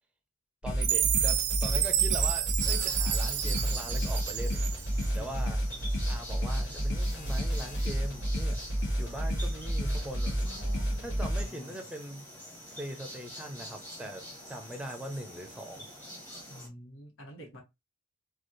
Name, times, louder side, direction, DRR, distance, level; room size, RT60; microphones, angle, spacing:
sound 1, 0.6-11.4, equal, 60° left, 1.1 m, -31 dB
voice 1, 0.6-4.6 5.1-5.6 6.1-8.6 9.0-10.3 11.0-12.2 12.8-15.9, right 1 dB, 5° right, 0.6 m, -41 dB
Chime, 0.8-5.1, right 11 dB, 55° right, 0.5 m, -30 dB
sound 2, 2.6-16.7, equal, 10° left, 1.1 m, -46 dB
voice 2, 5.1-5.6 10.4-11.8 16.5-17.6, equal, 75° left, 1.4 m, -48 dB
3.2 x 2.4 x 2.6 m
head